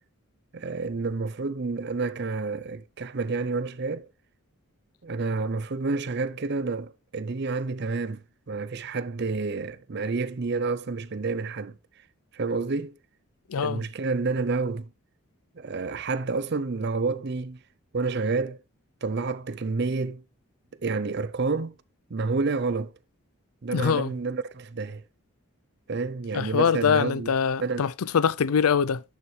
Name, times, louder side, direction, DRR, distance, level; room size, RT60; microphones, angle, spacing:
voice 1, 0.5-4.1 5.0-8.2 8.5-11.8 12.3-12.9 13.6-14.9 15.6-17.6 17.9-18.6 19.0-20.2 20.8-21.7 22.1-22.9 23.6-25.0 25.9-27.3 27.6-27.9, right 4 dB, 50° right, 0.5 m, -29 dB
voice 2, 13.5-13.8 23.7-24.1 26.3-29.0, left 6 dB, 80° left, 0.5 m, -23 dB
10.5 x 7.0 x 3.2 m
head